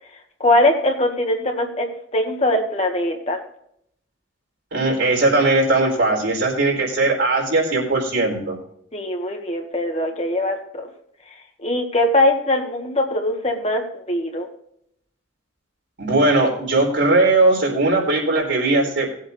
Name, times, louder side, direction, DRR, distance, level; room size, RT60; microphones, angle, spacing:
voice 1, 0.4-3.4 8.9-10.9 11.6-14.5, left 1 dB, 35° left, 3 dB, 1.7 m, -21 dB
voice 2, 4.7-8.6 16.0-19.1, right 2 dB, 75° right, -1 dB, 4.4 m, -19 dB
19.5 x 8.1 x 2.7 m, 0.70 s
head